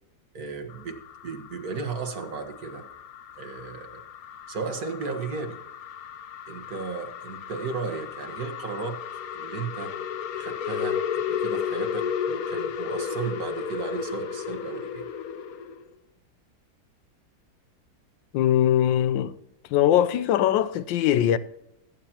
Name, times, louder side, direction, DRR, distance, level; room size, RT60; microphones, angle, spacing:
voice 1, 0.3-1.0 1.2-2.9 3.4-4.0 4.5-5.6 6.5-9.0 9.3-9.9 10.3-15.1, right 4 dB, 55° right, 1.7 m, -34 dB
sound 1, 0.7-15.8, left 7 dB, 60° left, 1.0 m, -34 dB
voice 2, 18.3-19.3 19.7-21.4, left 11 dB, 80° left, 1.3 m, -21 dB
17.0 x 9.3 x 2.9 m
omnidirectional pair, 2.0 m